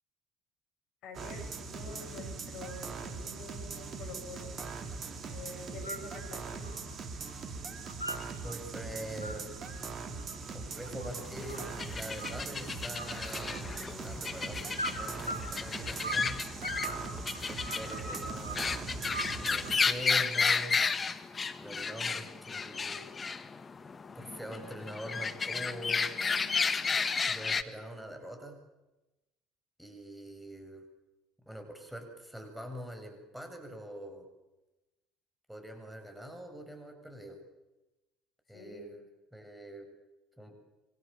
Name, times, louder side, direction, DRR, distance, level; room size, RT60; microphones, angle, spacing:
voice 1, 1.0-4.6 5.3-6.8 26.2-26.7 38.5-39.1, left 2 dB, 55° left, 4 dB, 7.6 m, -47 dB
sound 1, 1.1-19.8, right 4 dB, 40° right, 3.6 m, -41 dB
sound 2, 5.6-6.1 6.4-7.4 7.6-8.6 9.0-11.8 12.2-12.6 13.0-13.9 14.7-16.3 16.6-18.7 19.1-19.9, right 2 dB, 90° right, 4.9 m, -40 dB
voice 2, 8.4-9.5 10.5-13.6 14.0-16.7 17.5-18.9 19.3-20.8 21.5-23.1 24.1-26.1 27.3-28.6 29.8-30.8 31.5-34.3 35.5-37.4 38.5-39.0 39.3-39.9 40.4-40.6, equal, 5° right, 4 dB, 7.8 m, -44 dB
sound 3, 11.1-27.6, left 5 dB, 30° left, 1.8 m, -33 dB
27.5 x 25.5 x 7.2 m, 1.0 s
figure-of-eight pair, 60°, 0 cm